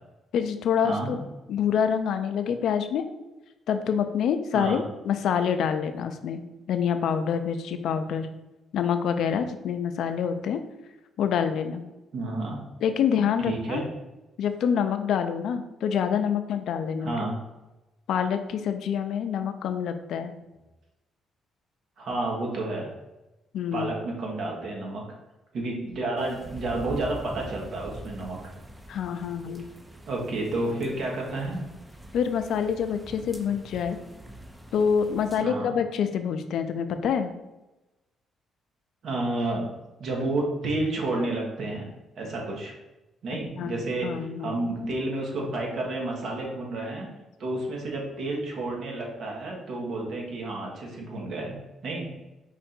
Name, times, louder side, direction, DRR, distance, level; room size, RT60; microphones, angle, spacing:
voice 1, 0.3-1.2 1.5-3.1 3.7-8.3 8.7-10.6 11.2-11.8 12.8-13.8 14.4-17.1 18.1-20.3 23.5-23.9 28.9-29.7 32.1-34.0 34.7-37.3 43.6-44.6, left 7 dB, 75° left, 8 dB, 0.4 m, -26 dB
voice 2, 0.8-1.2 4.5-4.8 12.1-12.6 13.4-13.9 17.0-17.3 22.0-22.9 23.7-25.0 25.5-28.4 30.1-31.6 35.4-35.7 39.0-39.7 40.0-41.9 42.2-42.7 43.2-44.1 44.4-47.1 47.4-51.6 51.8-52.1, right 2 dB, 65° right, -1 dB, 1.3 m, -30 dB
sound 1, 26.2-35.4, right 1 dB, 10° right, 0.5 m, -44 dB
4.7 x 2.5 x 4.3 m, 1.0 s
cardioid pair, 90°, 0 cm